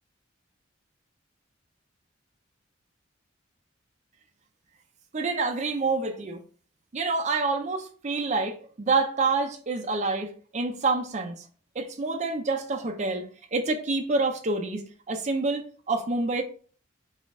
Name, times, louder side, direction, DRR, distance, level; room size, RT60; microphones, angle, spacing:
voice 1, 5.1-6.4 6.9-11.4 11.8-13.2 13.5-16.4, right 3 dB, 35° right, 4 dB, 0.4 m, -27 dB
4.1 x 2.3 x 3.6 m, 0.43 s
head